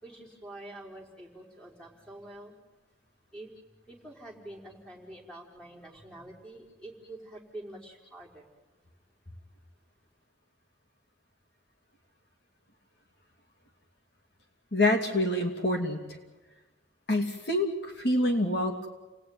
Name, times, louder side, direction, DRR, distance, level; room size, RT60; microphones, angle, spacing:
voice 1, 0.0-2.6 3.3-3.5 3.9-8.5, right 1 dB, 5° left, -1 dB, 4.8 m, -46 dB
voice 2, 14.7-16.0 17.1-18.9, left 1 dB, 55° left, 3 dB, 2.7 m, -26 dB
29.5 x 20.0 x 9.7 m, 1.2 s
head